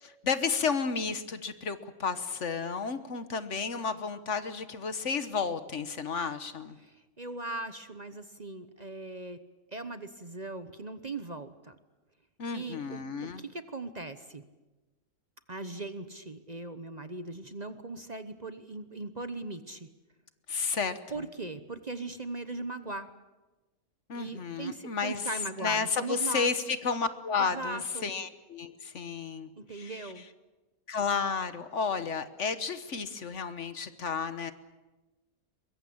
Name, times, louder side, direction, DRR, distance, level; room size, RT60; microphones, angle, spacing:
voice 1, 0.0-6.8 12.4-13.4 20.5-21.3 24.1-25.2 25.6-30.1 30.9-34.5, left 5 dB, 60° left, 11 dB, 1.5 m, -32 dB
voice 2, 6.8-9.4 9.7-11.7 12.5-14.4 15.5-19.9 21.1-23.1 24.1-26.5 27.4-28.1 29.6-30.2, right 3 dB, 35° right, 10 dB, 1.0 m, -39 dB
23.5 x 22.0 x 8.6 m, 1.1 s
omnidirectional pair, 1.5 m